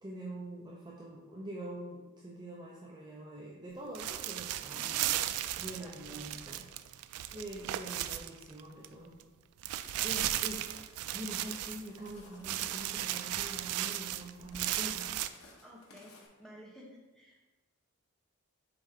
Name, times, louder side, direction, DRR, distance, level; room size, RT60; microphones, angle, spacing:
voice 1, 0.0-6.7 7.3-9.2 10.0-10.6 11.1-15.1, right 1 dB, 20° right, -4 dB, 0.5 m, -45 dB
sound 1, 3.9-8.9 9.2-9.3 9.6-12.1 12.4-15.3, right 13 dB, 80° right, 0.3 m, -35 dB
voice 2, 4.7-5.2 5.8-6.3 7.2-7.3 10.0-10.1 15.6-16.1 16.4-17.4, equal, ahead, -3 dB, 1.0 m, -53 dB
Walk footsteps, 9.8-16.3, left 2 dB, 75° left, 1.1 m, -58 dB
6.8 x 4.2 x 3.6 m, 1.2 s
head